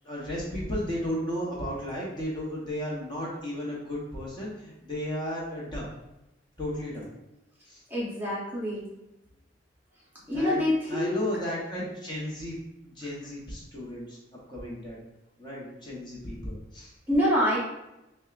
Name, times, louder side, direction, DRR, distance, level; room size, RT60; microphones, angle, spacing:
voice 1, 0.0-5.8 6.6-7.1 7.7-7.8 10.3-10.6 10.9-12.6 12.8-14.2 14.5-15.0 15.4-16.9, equal, 25° left, -5 dB, 0.9 m, -34 dB
voice 2, 7.9-8.9 10.3-11.2 17.1-17.6, left 1 dB, 10° right, -7 dB, 0.8 m, -26 dB
6.0 x 2.2 x 2.4 m, 0.93 s
head